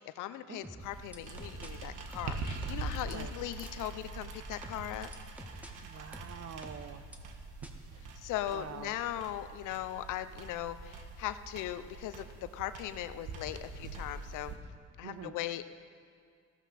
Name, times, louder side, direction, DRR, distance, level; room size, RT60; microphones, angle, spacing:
voice 1, 0.0-5.1 8.2-12.3 12.5-14.5 15.0-15.7, left 12 dB, 90° left, 12 dB, 0.6 m, -39 dB
sound 1, 0.6-1.7 2.1-2.9 3.6-3.7 4.6-5.7 6.1-7.2 7.6-7.7, equal, 5° right, 1.5 m, -47 dB
sound 2, 0.8-14.6, right 3 dB, 85° right, 1.4 m, -44 dB
voice 2, 5.8-7.0 8.5-8.9 15.0-15.3, right 8 dB, 55° right, 11 dB, 0.9 m, -45 dB
15.0 x 13.5 x 4.2 m, 2.2 s
cardioid pair, 90°, 30 cm